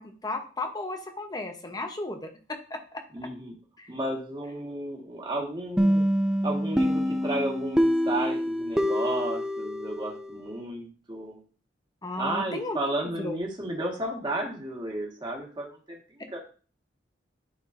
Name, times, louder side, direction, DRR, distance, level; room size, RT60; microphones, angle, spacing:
voice 1, 0.0-3.0 3.8-3.9 12.0-12.8 13.2-13.4, left 2 dB, 20° left, 5 dB, 0.9 m, -34 dB
voice 2, 3.1-3.5 3.9-6.1 6.4-11.4 12.2-16.4, right 1 dB, 25° right, -1 dB, 1.7 m, -33 dB
sound 1, 5.8-10.5, equal, 5° right, 0.5 m, -26 dB
10.5 x 4.3 x 2.7 m, 0.38 s
head